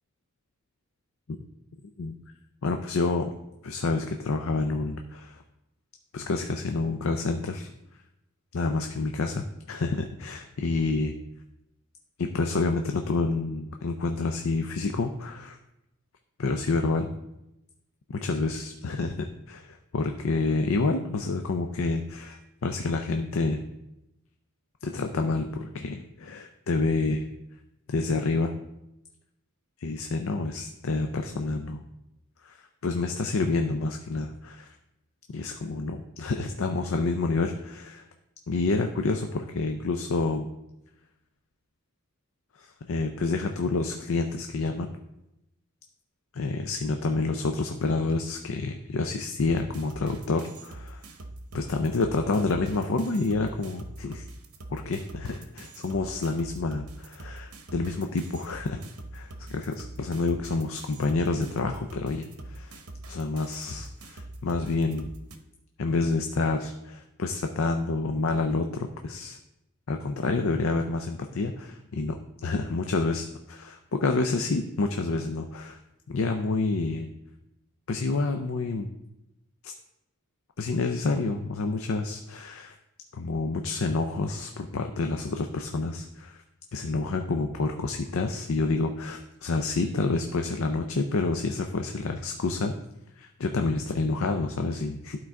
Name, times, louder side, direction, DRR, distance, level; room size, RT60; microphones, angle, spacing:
voice 1, 2.6-3.3 3.6-5.4 6.1-7.7 8.5-11.1 12.2-15.6 16.4-17.1 18.1-23.6 24.8-27.3 27.9-28.5 29.8-31.8 32.4-32.6 32.8-34.7 35.3-38.1 38.5-40.5 42.6-44.9 46.3-51.0 51.5-54.3 54.7-58.8 59.1-62.8 63.1-65.1 65.8-69.4 69.9-75.8 76.1-77.1 77.9-78.9 79.6-79.7 80.6-82.7 83.1-86.4 86.7-92.8 93.2-95.2, left 3 dB, 65° left, 5 dB, 0.5 m, -28 dB
sound 1, 49.4-65.4, right 2 dB, 80° right, 0.9 m, -44 dB
12.0 x 4.5 x 3.6 m, 0.87 s
head